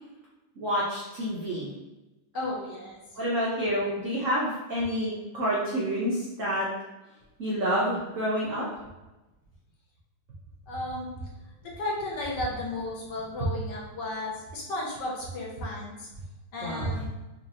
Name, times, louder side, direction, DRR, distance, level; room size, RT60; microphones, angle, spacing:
voice 1, 0.6-1.7 3.2-6.7 7.4-8.6 16.6-16.9, equal, 85° right, -6 dB, 0.6 m, -28 dB
voice 2, 2.3-3.0 10.7-11.1 11.6-16.1 16.5-17.1, left 2 dB, 65° left, -4 dB, 1.2 m, -34 dB
4.2 x 2.9 x 2.8 m, 1.0 s
omnidirectional pair, 2.3 m